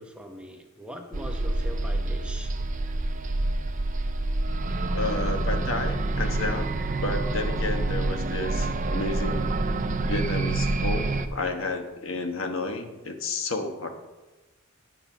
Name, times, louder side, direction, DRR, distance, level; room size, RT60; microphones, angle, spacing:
voice 1, 0.0-2.5, equal, 5° right, 3 dB, 0.9 m, -41 dB
sound 1, 1.1-11.3, right 2 dB, 40° right, 0.6 m, -27 dB
voice 2, 4.9-6.7 7.0-9.5 10.0-13.9, left 2 dB, 70° left, 5 dB, 1.2 m, -31 dB
9.2 x 5.6 x 7.1 m, 1.2 s
head